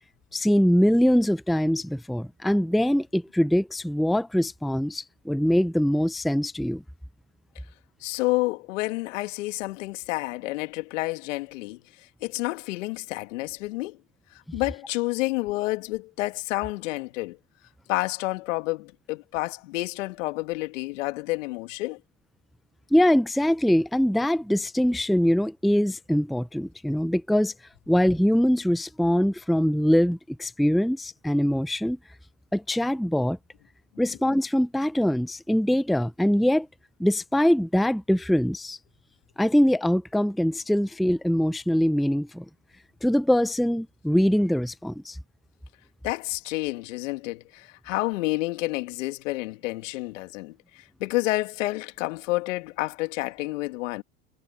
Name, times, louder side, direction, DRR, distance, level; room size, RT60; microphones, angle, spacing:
voice 1, 0.3-6.8 22.9-27.5 27.9-32.0 32.5-33.4 34.0-36.7 37.0-38.8 39.4-42.4 43.0-45.2, equal, ahead, 0.7 m, -23 dB
voice 2, 8.0-14.0 14.5-17.4 17.9-22.0 46.0-54.0, left 20 dB, 75° left, 2.7 m, -29 dB
hypercardioid pair, 85°, 38 cm